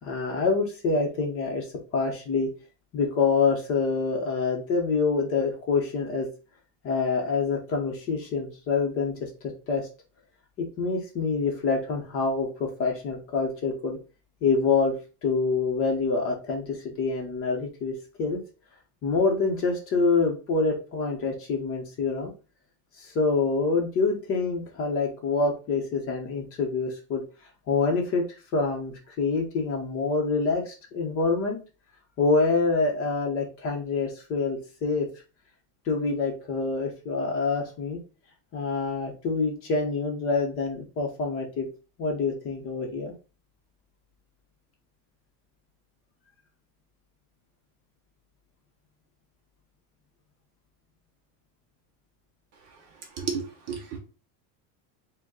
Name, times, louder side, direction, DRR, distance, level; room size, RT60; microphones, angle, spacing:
voice 1, 0.0-1.7 1.9-2.5 2.9-6.3 6.8-9.9 10.6-14.0 14.4-14.9 15.2-17.9 18.2-18.4 19.0-22.3 23.0-27.2 27.7-28.2 28.5-31.6 32.2-35.1 35.9-38.0 38.5-41.7 42.0-43.1, left 4 dB, 30° left, 2 dB, 0.8 m, -26 dB
voice 2, 53.2-54.0, right 6 dB, 35° right, 3 dB, 0.7 m, -32 dB
5.0 x 2.3 x 3.7 m, 0.33 s
supercardioid pair, 165°, 47 cm